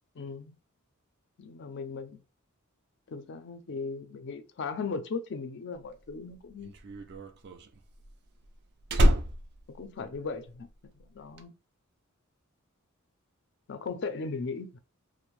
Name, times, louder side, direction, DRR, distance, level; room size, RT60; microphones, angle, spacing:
voice 1, 0.2-0.6 1.4-2.2 3.1-6.7 9.7-11.5 13.7-14.8, left 4 dB, 55° left, 0.4 m, -37 dB
Slam, 5.9-10.7 11.0-11.4, equal, 50° right, 0.3 m, -28 dB
2.5 x 2.0 x 3.0 m
head